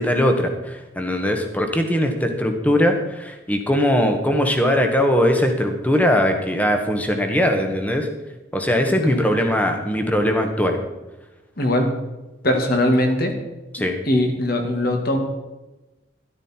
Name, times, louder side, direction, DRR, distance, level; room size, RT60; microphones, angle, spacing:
voice 1, 0.0-8.1 8.5-10.8 13.7-14.0, equal, 10° left, 4 dB, 1.4 m, -20 dB
voice 2, 8.9-9.3 11.6-11.9 12.4-13.4 13.8-15.2, left 1 dB, 50° left, 4 dB, 2.1 m, -21 dB
13.0 x 12.5 x 4.4 m, 1.1 s
head